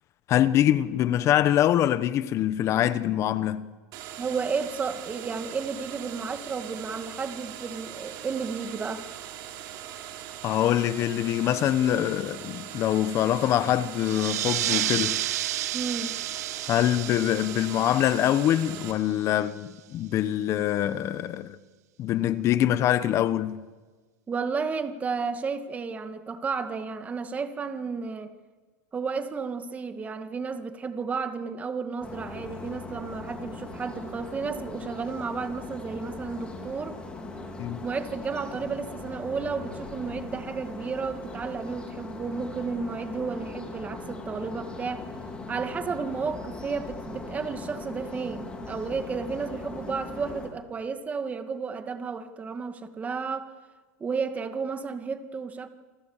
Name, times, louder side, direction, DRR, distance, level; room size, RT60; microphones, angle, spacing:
voice 1, 0.3-3.7 10.4-15.2 16.7-21.6 22.0-23.6 37.6-37.8, left 11 dB, 35° left, 1.2 m, -24 dB
sound 1, 3.9-18.9, right 10 dB, 50° right, 3.2 m, -41 dB
voice 2, 4.2-9.1 15.7-16.2 24.3-28.3 28.9-37.0 37.8-45.1 45.5-53.5 54.0-55.7, right 5 dB, 15° right, 2.1 m, -32 dB
sound 2, 14.0-19.2, right 13 dB, 85° right, 0.8 m, -31 dB
sound 3, 32.0-50.5, left 3 dB, 10° left, 4.0 m, -40 dB
28.5 x 25.5 x 7.4 m
supercardioid pair, 135°, 8 cm